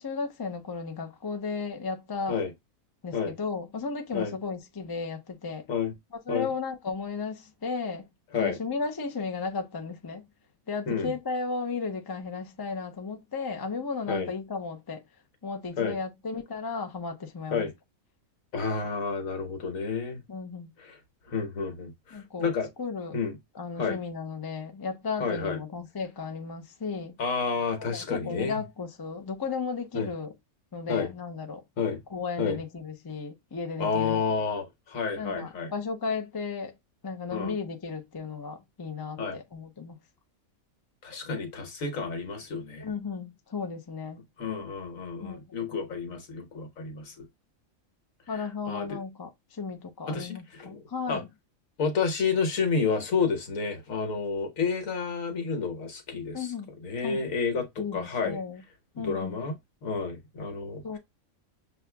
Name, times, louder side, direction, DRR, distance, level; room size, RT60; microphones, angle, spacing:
voice 1, 0.0-2.4 3.0-5.6 6.3-8.1 8.4-10.2 10.7-15.0 15.4-17.7 20.3-20.7 22.1-22.5 22.8-23.2 23.6-27.1 27.8-30.3 30.7-31.6 32.1-34.2 35.2-36.7 37.0-40.0 42.8-44.2 45.2-45.4 48.3-51.3 56.3-56.7 57.0-57.2 57.8-58.6 59.0-59.4 60.8-61.0, left 4 dB, 30° left, 0.4 m, -34 dB
voice 2, 18.5-20.2 20.8-21.0 21.3-22.7 23.1-23.4 23.8-24.0 25.2-25.6 27.2-28.6 29.9-30.1 30.9-31.1 31.8-32.0 32.4-32.6 33.8-35.7 37.3-37.5 39.2-39.4 41.0-42.9 44.4-47.3 48.7-49.0 50.1-51.2 51.8-56.5 56.8-58.4 59.0-61.0, left 5 dB, 70° left, 1.5 m, -30 dB
7.0 x 2.4 x 2.2 m
omnidirectional pair, 1.5 m